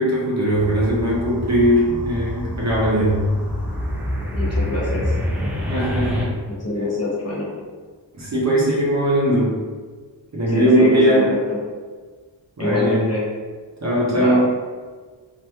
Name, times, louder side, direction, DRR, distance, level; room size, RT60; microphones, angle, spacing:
voice 1, 0.0-3.2 5.7-6.4 8.1-9.6 10.3-11.3 12.6-13.0 13.8-14.4, right 1 dB, 35° right, -6 dB, 0.7 m, -19 dB
sound 1, 0.5-6.2, left 1 dB, 5° right, 0.4 m, -27 dB
voice 2, 4.3-5.1 6.5-7.5 10.5-11.6 12.6-13.2 14.2-14.4, left 2 dB, 35° left, -7 dB, 0.8 m, -25 dB
2.8 x 2.6 x 2.3 m, 1.4 s
wide cardioid pair, 120°, 45 cm